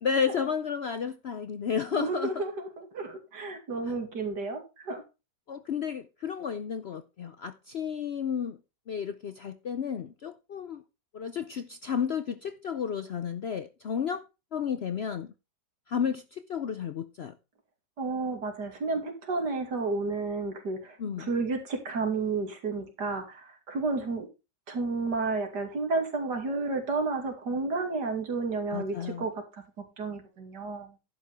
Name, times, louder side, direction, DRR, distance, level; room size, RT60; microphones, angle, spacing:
voice 1, 0.0-2.4 5.5-8.6 8.9-10.8 11.1-14.2 14.5-15.3 15.9-17.3 21.0-21.3 28.7-29.3, left 7 dB, 70° left, 0.6 m, -32 dB
voice 2, 1.9-5.0 18.0-24.3 24.7-29.4 29.8-30.9, right 3 dB, 70° right, 3.0 m, -31 dB
11.5 x 8.4 x 3.5 m
omnidirectional pair, 1.9 m